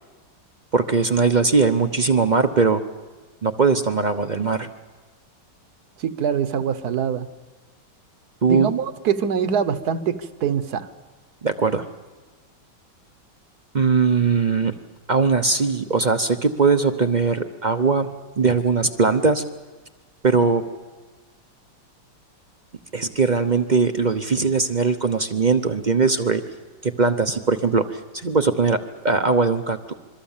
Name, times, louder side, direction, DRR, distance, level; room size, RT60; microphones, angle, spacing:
voice 1, 0.7-2.8 3.4-4.7 8.4-8.7 11.4-11.9 13.7-14.7 15.1-18.1 18.4-19.4 20.2-20.6 22.9-26.4 26.8-29.9, right 4 dB, 40° right, 9 dB, 0.6 m, -20 dB
voice 2, 6.0-7.3 8.5-10.9, right 7 dB, 60° right, 12 dB, 1.5 m, -24 dB
26.5 x 23.0 x 7.3 m, 1.3 s
omnidirectional pair, 2.0 m